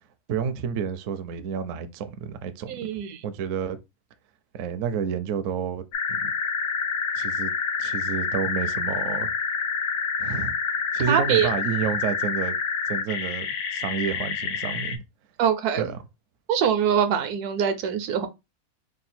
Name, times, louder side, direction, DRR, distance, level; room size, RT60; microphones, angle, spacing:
voice 1, 0.3-2.7 3.2-3.8 4.5-6.3 7.2-7.5 7.8-9.3 10.2-10.6 10.9-12.6 12.9-15.0 15.8-16.0, right 7 dB, 65° right, 0.8 m, -30 dB
voice 2, 2.7-3.2 10.3-10.4 11.1-11.5 15.4-15.9 16.5-18.3, right 8 dB, 85° right, 1.2 m, -24 dB
sound 1, 5.9-15.0, left 6 dB, 80° left, 1.1 m, -28 dB
3.7 x 2.3 x 4.1 m
omnidirectional pair, 1.6 m